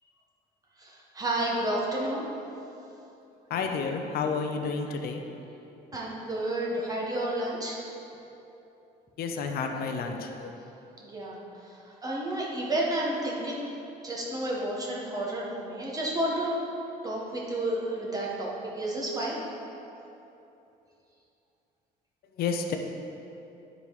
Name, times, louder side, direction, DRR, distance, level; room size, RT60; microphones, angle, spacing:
voice 1, 0.8-2.3 5.9-7.8 11.0-13.7 14.0-16.5 17.0-19.4, right 1 dB, 20° right, -4 dB, 1.5 m, -31 dB
voice 2, 3.5-5.2 9.2-10.5 22.4-22.8, left 5 dB, 65° left, 4 dB, 0.7 m, -30 dB
10.5 x 4.0 x 4.9 m, 2.9 s
cardioid pair, 110°, 17 cm